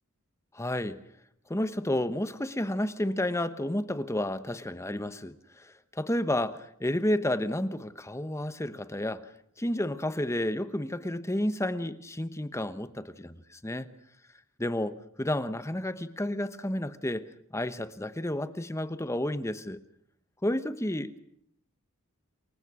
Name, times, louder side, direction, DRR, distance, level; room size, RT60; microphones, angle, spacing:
voice 1, 0.5-1.0 1.5-9.3 9.6-13.9 14.6-17.2 17.5-19.8 20.4-21.2, left 1 dB, 15° left, 1.0 m, -31 dB
27.5 x 22.5 x 6.3 m
head